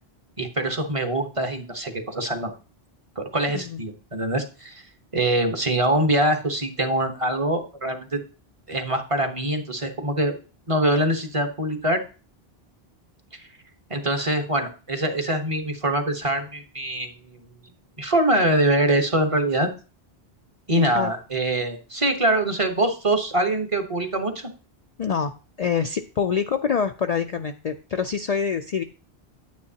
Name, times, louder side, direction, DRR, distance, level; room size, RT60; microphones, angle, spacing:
voice 1, 0.4-2.5 3.2-4.8 5.1-8.2 8.7-10.3 10.7-12.0 13.3-13.5 13.9-17.5 18.0-19.7 20.7-24.5, right 1 dB, 30° right, 5 dB, 1.1 m, -24 dB
voice 2, 20.8-21.1 25.0-25.3 25.6-28.8, left 7 dB, 50° left, 7 dB, 0.5 m, -25 dB
9.5 x 9.3 x 2.8 m, 0.35 s
omnidirectional pair, 1.1 m